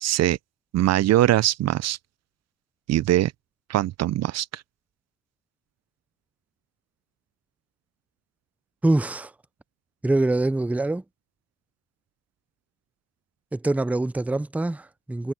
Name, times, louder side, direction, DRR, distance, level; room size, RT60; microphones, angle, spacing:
voice 1, 0.0-0.4 0.7-2.0 2.9-3.3 3.7-4.6, right 13 dB, 60° right, 0.5 m, -22 dB
voice 2, 8.8-9.3 10.0-11.0 13.5-15.3, right 2 dB, 5° right, 0.5 m, -24 dB
cardioid pair, 90°, 30 cm